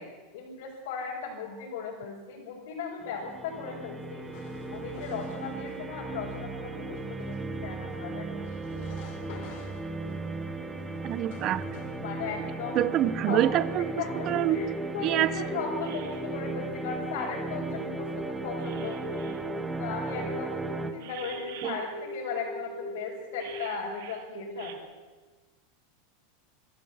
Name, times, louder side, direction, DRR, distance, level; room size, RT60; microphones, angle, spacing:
voice 1, 0.0-4.3 4.7-6.9 7.2-8.5 12.0-12.9 13.3-13.6 14.0-18.1 18.4-19.0 19.8-20.6 20.9-24.9, left 5 dB, 75° left, -5 dB, 5.6 m, -37 dB
sound 1, 3.0-20.9, right 3 dB, 10° right, 1.5 m, -36 dB
sound 2, 4.2-12.0, left 7 dB, 60° left, 3.9 m, -49 dB
voice 2, 11.0-11.6 12.7-13.9 14.3-14.6 15.0-15.3 21.6-21.8, right 12 dB, 35° right, 16 dB, 0.9 m, -26 dB
sound 3, 13.9-19.6 20.1-24.7, right 2 dB, 70° right, 2.4 m, -40 dB
27.0 x 12.5 x 8.1 m, 1.3 s
supercardioid pair, 160°, 0 cm